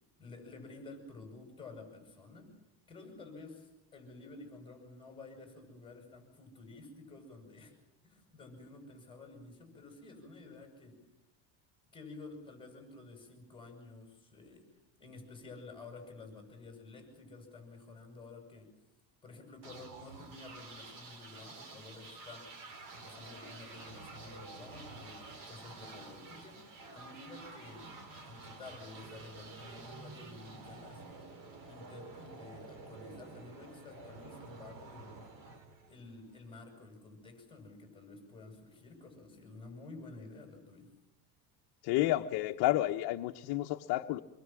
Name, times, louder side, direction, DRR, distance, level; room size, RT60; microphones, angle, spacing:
voice 1, 0.2-2.5 2.9-7.8 8.0-11.0 11.9-14.7 15.0-18.7 19.2-22.5 22.9-26.7 26.9-27.9 28.2-31.0 31.7-35.2 35.9-40.9, left 3 dB, 10° left, 3 dB, 7.7 m, -51 dB
sound 1, 19.6-36.4, right 3 dB, 50° right, 4.8 m, -50 dB
voice 2, 41.8-44.2, left 15 dB, 60° left, 4 dB, 1.1 m, -30 dB
27.0 x 23.5 x 7.6 m, 0.88 s
cardioid pair, 155°, 42 cm